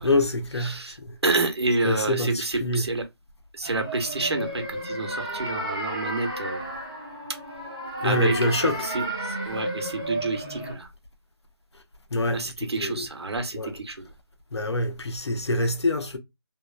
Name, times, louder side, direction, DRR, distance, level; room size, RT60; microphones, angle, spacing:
voice 1, 0.0-1.1 1.8-2.9 8.0-8.9 12.1-13.1 13.6-13.8 14.5-16.2, left 1 dB, 75° left, 0.8 m, -26 dB
voice 2, 0.6-1.0 1.2-3.0 3.6-6.7 8.0-10.9 12.3-14.0, right 3 dB, 70° right, 0.8 m, -29 dB
sound 1, 3.6-10.7, right 1 dB, 15° left, 0.5 m, -32 dB
2.9 x 2.0 x 2.3 m
figure-of-eight pair, 175°, 14 cm